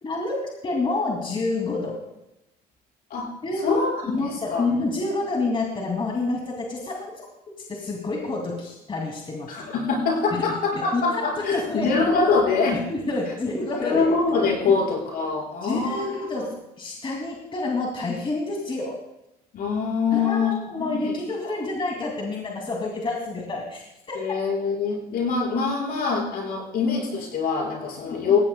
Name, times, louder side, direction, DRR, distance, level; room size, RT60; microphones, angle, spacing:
voice 1, 0.0-2.0 3.4-3.8 4.1-7.1 7.7-9.5 10.3-10.4 10.9-11.2 11.5-11.9 12.7-14.1 14.7-14.8 15.6-16.5 16.8-18.9 20.1-24.2 28.1-28.4, left 2 dB, 30° left, -1 dB, 2.6 m, -28 dB
voice 2, 3.6-4.6 9.5-12.8 13.3-13.4 13.7-16.5 19.5-21.2 21.4-21.5 24.1-28.4, left 4 dB, 65° left, -3 dB, 5.5 m, -24 dB
18.5 x 16.0 x 2.3 m, 0.90 s
cardioid pair, 110°, 17 cm